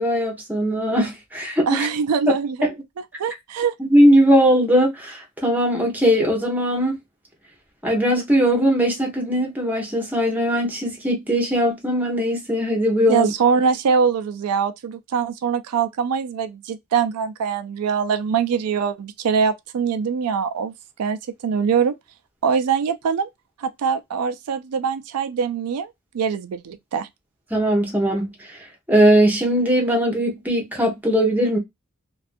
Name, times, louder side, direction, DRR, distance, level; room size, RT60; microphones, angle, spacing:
voice 1, 0.0-1.9 2.6-2.7 3.8-7.0 7.8-13.3 27.5-28.3 28.9-31.6, equal, 10° right, 0.8 m, -19 dB
voice 2, 1.7-2.7 3.2-3.7 13.1-20.7 21.0-21.9 22.4-23.3 23.6-25.9 26.1-27.1, right 6 dB, 90° right, 0.4 m, -23 dB
2.5 x 2.3 x 2.4 m
head